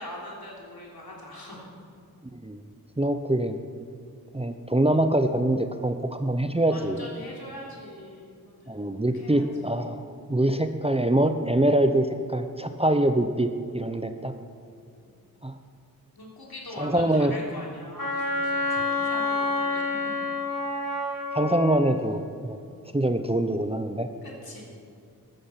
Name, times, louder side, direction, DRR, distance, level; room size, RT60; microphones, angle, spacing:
voice 1, 0.0-1.7 6.7-8.8 9.1-9.4 15.1-15.2 16.1-19.8 24.2-24.7, left 1 dB, 75° left, -3 dB, 3.6 m, -42 dB
voice 2, 2.3-2.6 3.0-3.6 4.3-7.1 8.7-10.0 10.3-14.3 15.4-15.5 16.8-17.4 21.3-22.6 22.9-24.1, right 1 dB, 15° right, 8 dB, 0.7 m, -24 dB
Wind instrument woodwind instrument, 18.0-21.8, left 3 dB, 60° left, 4.4 m, -28 dB
15.0 x 12.0 x 5.8 m, 2.4 s
wide cardioid pair, 55°, 37 cm